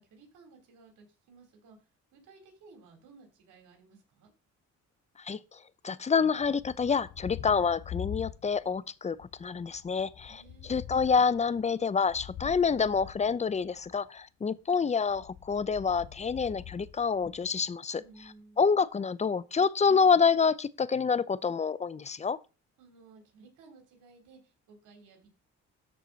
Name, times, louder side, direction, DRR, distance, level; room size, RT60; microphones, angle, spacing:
voice 1, 0.0-1.8 2.1-4.3 10.2-10.7 17.9-18.7 22.8-25.3, right 4 dB, 85° right, 3.5 m, -56 dB
voice 2, 5.2-5.6 5.8-18.0 18.6-22.4, left 5 dB, 25° left, 0.5 m, -27 dB
Thunder, 6.4-8.8 9.1-14.0 15.0-17.7, left 10 dB, 55° left, 0.8 m, -45 dB
13.0 x 4.7 x 4.0 m
cardioid pair, 90°, 30 cm